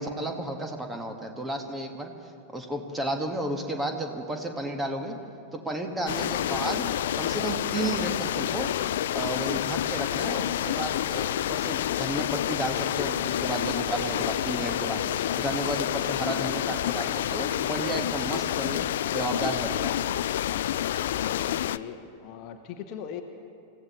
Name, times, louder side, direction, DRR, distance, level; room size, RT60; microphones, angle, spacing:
voice 1, 0.0-2.1 2.5-5.2 5.5-6.8 7.1-8.7 9.1-18.9 19.1-19.9, right 1 dB, 10° right, 4 dB, 1.6 m, -32 dB
sound 1, 6.1-21.8, left 11 dB, 60° left, 0.3 m, -28 dB
voice 2, 21.1-23.2, left 8 dB, 40° left, 6 dB, 1.0 m, -40 dB
27.5 x 15.5 x 3.1 m, 2.6 s
figure-of-eight pair, 90°, 0 cm